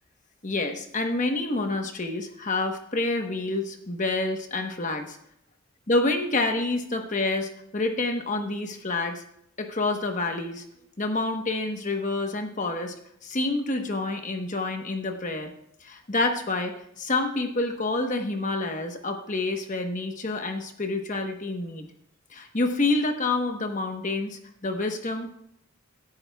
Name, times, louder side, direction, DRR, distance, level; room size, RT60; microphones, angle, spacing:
voice 1, 0.4-5.2 5.9-9.2 9.6-10.6 11.0-12.9 13.2-15.5 15.8-21.9 22.3-25.3, left 2 dB, 35° left, 5 dB, 1.1 m, -28 dB
17.0 x 10.5 x 2.3 m, 0.72 s
head